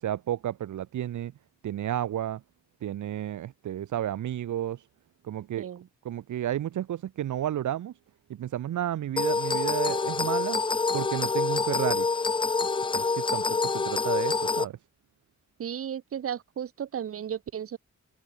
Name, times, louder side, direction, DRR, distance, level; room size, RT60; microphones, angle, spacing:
voice 1, 0.0-1.3 1.6-2.4 2.8-4.9 5.2-5.7 6.0-7.9 8.3-10.6 10.9-12.1 12.9-14.8, right 11 dB, 85° right, 0.8 m, -32 dB
sound 1, 9.2-14.6, left 4 dB, 15° left, 0.3 m, -26 dB
voice 2, 15.6-17.8, right 9 dB, 50° right, 0.6 m, -34 dB
wide cardioid pair, 120°, 29 cm